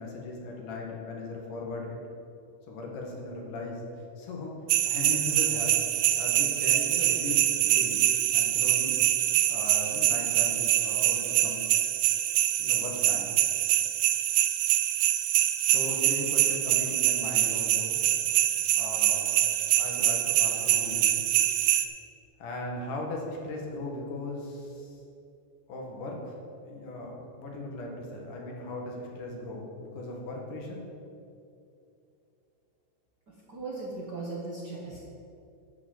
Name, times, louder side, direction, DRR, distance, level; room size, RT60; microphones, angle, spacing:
voice 1, 0.0-2.0 2.7-3.8 4.2-4.5 4.8-5.8 6.2-8.0 8.3-9.0 9.5-11.7 12.6-13.4 15.6-18.0 18.7-19.4 19.8-21.2 22.4-25.0 25.7-26.4 26.7-30.8, left 2 dB, 80° left, -1 dB, 3.2 m, -38 dB
sound 1, 4.7-21.8, right 13 dB, 85° right, 1.5 m, -25 dB
voice 2, 33.3-35.0, right 3 dB, 55° right, -4 dB, 1.1 m, -38 dB
10.5 x 6.0 x 7.7 m, 2.6 s
omnidirectional pair, 3.7 m